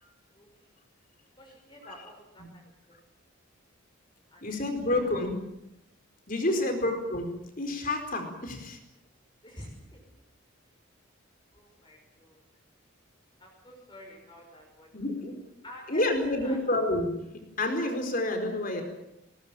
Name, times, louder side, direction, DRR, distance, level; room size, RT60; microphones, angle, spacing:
voice 1, 1.4-2.6 4.3-4.4 4.9-5.1 6.5-6.6 9.4-10.0 11.5-12.4 13.4-14.9 15.6-16.6, left 1 dB, 20° left, 0 dB, 5.9 m, -48 dB
voice 2, 4.4-5.3 6.3-8.8 14.9-15.3 15.9-17.2 17.6-18.8, left 1 dB, 40° left, 5 dB, 4.5 m, -29 dB
21.0 x 20.0 x 9.0 m, 0.85 s
head